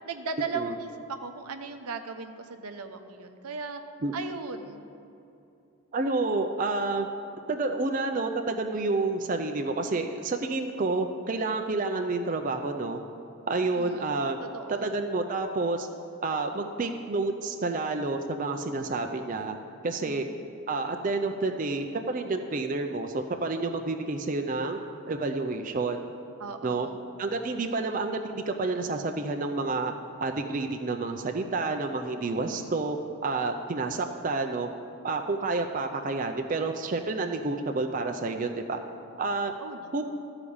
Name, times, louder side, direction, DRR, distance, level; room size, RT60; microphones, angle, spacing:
voice 1, 0.1-3.8 4.1-4.8 13.8-14.1 14.4-15.0 20.0-20.3 26.4-27.0 32.4-32.8 39.6-39.9, right 4 dB, 90° right, 7 dB, 0.7 m, -37 dB
voice 2, 5.9-7.1 7.5-13.0 13.5-14.4 14.8-15.9 16.2-19.6 19.8-20.3 20.7-24.8 25.1-26.0 26.6-26.9 27.2-29.9 30.2-33.0 33.2-34.7 35.0-38.8 39.2-39.5 39.9-40.0, right 3 dB, 35° right, 5 dB, 0.4 m, -29 dB
13.5 x 4.9 x 7.0 m, 2.7 s
head